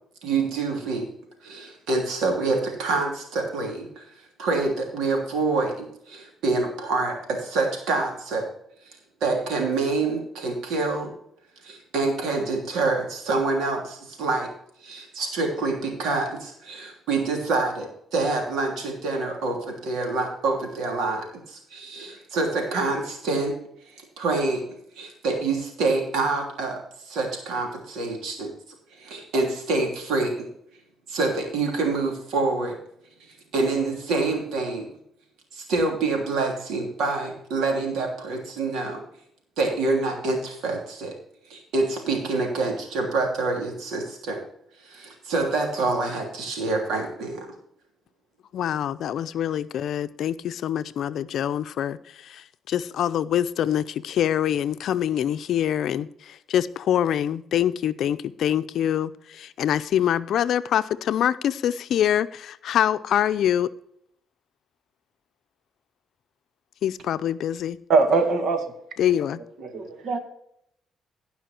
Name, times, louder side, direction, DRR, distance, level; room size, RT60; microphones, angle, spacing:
voice 1, 0.2-1.1 1.4-4.0 4.4-8.5 9.2-11.1 11.6-14.5 14.8-23.5 23.9-24.6 25.0-26.8 27.0-28.5 28.9-30.5 31.1-32.8 33.5-34.9 35.5-39.0 39.6-41.1 41.5-44.4 44.8-47.5, right 3 dB, 85° right, 3.1 m, -26 dB
voice 2, 48.5-63.7 66.8-67.8 69.0-69.4, left 10 dB, 70° left, 0.5 m, -25 dB
voice 3, 67.9-68.6 69.6-70.2, right 4 dB, 65° right, 1.9 m, -21 dB
16.5 x 5.6 x 4.5 m
cardioid pair, 90°, 0 cm